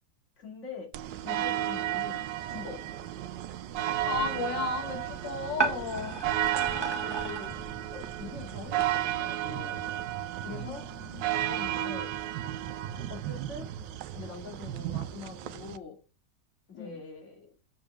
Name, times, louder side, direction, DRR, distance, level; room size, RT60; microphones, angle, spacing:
voice 1, 0.4-0.9 1.2-3.1 6.5-7.5 7.9-9.9 10.4-10.8 11.3-12.1 12.9-13.7 14.1-16.0 16.7-17.5, left 4 dB, 40° left, 0 dB, 2.7 m, -44 dB
sound 1, 0.9-15.8, right 13 dB, 90° right, 1.3 m, -33 dB
voice 2, 3.7-6.2 10.6-11.2 16.7-17.0, left 4 dB, 85° left, 3 dB, 2.4 m, -35 dB
sound 2, 3.7-8.9, right 3 dB, 15° right, 1.7 m, -36 dB
7.0 x 5.2 x 7.0 m, 0.32 s
omnidirectional pair, 1.9 m